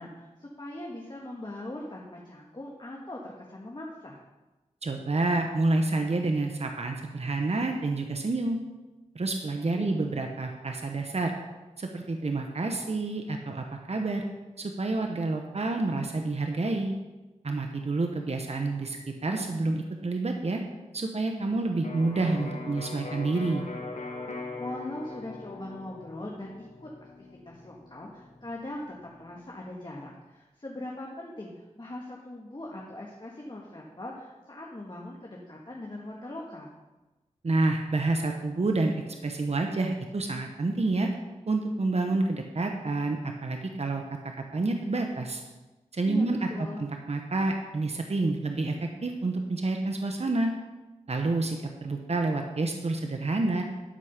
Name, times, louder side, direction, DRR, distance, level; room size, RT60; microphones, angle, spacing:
voice 1, 0.0-4.2 9.5-10.0 24.6-26.9 27.4-36.7 46.0-46.8, left 1 dB, 35° left, -2 dB, 1.5 m, -41 dB
voice 2, 4.8-8.6 9.1-11.3 11.8-14.2 14.6-16.9 17.4-19.0 19.2-20.6 20.9-23.6 37.4-38.9 39.2-41.1 41.5-44.0 44.5-45.4 45.9-50.5 51.1-53.6, right 2 dB, 55° right, 3 dB, 1.0 m, -28 dB
Electric guitar, 21.8-29.6, left 3 dB, 75° left, 1.3 m, -42 dB
12.5 x 4.9 x 5.8 m, 1.1 s
cardioid pair, 40°, 13 cm